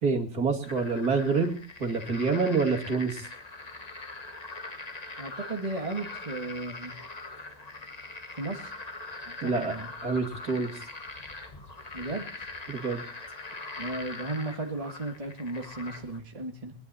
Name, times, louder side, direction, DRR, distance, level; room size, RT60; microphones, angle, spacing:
voice 1, 0.0-3.3 9.4-9.7 10.0-10.8 12.7-13.0, right 4 dB, 55° right, 2 dB, 2.9 m, -27 dB
sound 1, 0.6-16.2, left 3 dB, 25° left, 1.4 m, -42 dB
voice 2, 5.2-6.9 8.4-8.7 9.4-9.9 11.9-12.3 13.8-16.7, right 2 dB, 20° right, 2 dB, 1.7 m, -35 dB
22.0 x 11.0 x 4.2 m, 0.39 s
omnidirectional pair, 2.0 m